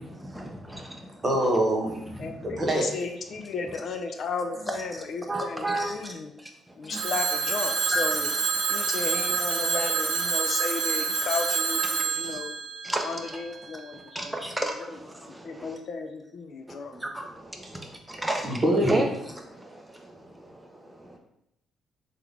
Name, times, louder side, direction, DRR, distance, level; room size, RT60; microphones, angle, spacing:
voice 1, 0.2-1.2 2.1-2.6 4.9-5.0 5.3-6.1 6.4-6.5 6.9-7.0 7.9-8.0 12.2-12.4 12.8-13.4 13.9-15.8 16.9-21.2, right 1 dB, 10° right, 2 dB, 0.6 m, -33 dB
voice 2, 1.2-2.0 2.4-2.9 18.4-19.0, right 1 dB, 30° right, -1 dB, 0.9 m, -24 dB
voice 3, 2.2-6.3 6.8-8.3 8.7-12.5 13.0-14.2 14.9-15.0 15.3-17.0, left 4 dB, 60° left, 6 dB, 0.3 m, -34 dB
Telephone, 6.9-13.7, right 5 dB, 80° right, 0.4 m, -28 dB
3.6 x 2.3 x 3.2 m, 0.79 s
cardioid pair, 90°, 0 cm